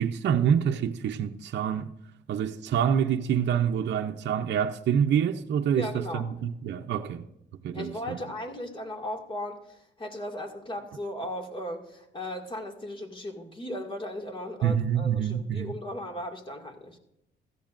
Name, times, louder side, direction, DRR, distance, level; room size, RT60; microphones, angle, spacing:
voice 1, 0.0-1.9 2.3-7.2 7.6-8.2 14.6-15.7, right 8 dB, 60° right, 0.7 m, -26 dB
voice 2, 5.8-6.3 7.7-17.0, left 1 dB, 25° left, 2.1 m, -37 dB
16.0 x 14.0 x 2.6 m
cardioid pair, 90°, 20 cm